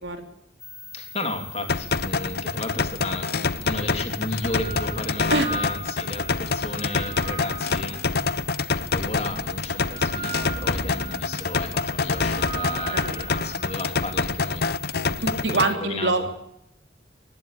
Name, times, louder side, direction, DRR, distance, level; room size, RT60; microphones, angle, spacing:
sound 1, 0.6-15.7, left 4 dB, 15° left, 2.3 m, -41 dB
voice 1, 0.9-8.0 8.8-14.7 15.5-16.3, left 2 dB, 35° left, 5 dB, 3.2 m, -33 dB
sound 2, 1.7-15.7, left 4 dB, 55° left, 0.7 m, -27 dB
sound 3, 3.1-3.2 4.1-8.4 9.1-13.8, right 3 dB, 35° right, 3.1 m, -36 dB
voice 2, 15.2-16.3, right 2 dB, 70° right, 5 dB, 3.5 m, -24 dB
19.5 x 16.0 x 8.6 m, 0.79 s
head